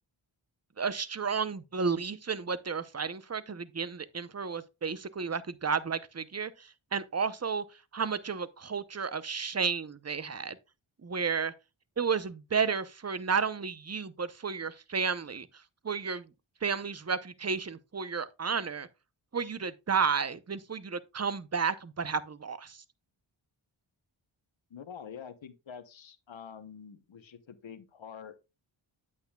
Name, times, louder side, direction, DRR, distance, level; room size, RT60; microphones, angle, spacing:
voice 1, 0.8-7.6 7.9-10.6 11.0-11.5 12.0-15.5 15.8-16.2 16.6-18.9 19.3-22.8, right 5 dB, 30° right, 0.7 m, -32 dB
voice 2, 24.7-28.4, left 7 dB, 65° left, 1.0 m, -46 dB
8.7 x 8.3 x 2.3 m
cardioid pair, 40°, 50 cm